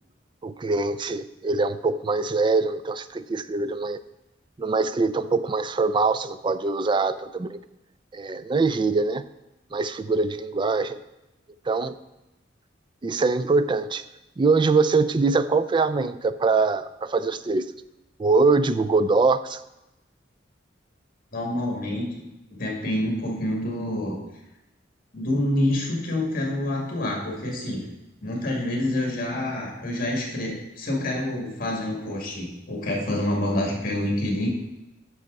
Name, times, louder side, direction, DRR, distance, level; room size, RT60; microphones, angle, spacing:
voice 1, 0.4-4.0 4.6-7.6 8.1-9.2 9.7-11.0 11.7-12.0 13.0-14.0 14.4-17.8 18.2-19.6, right 3 dB, 25° right, 12 dB, 0.4 m, -23 dB
voice 2, 21.3-22.2 22.5-24.2 25.1-27.9 28.2-34.5, left 1 dB, 50° left, -1 dB, 2.3 m, -27 dB
9.6 x 6.3 x 4.0 m, 0.93 s
head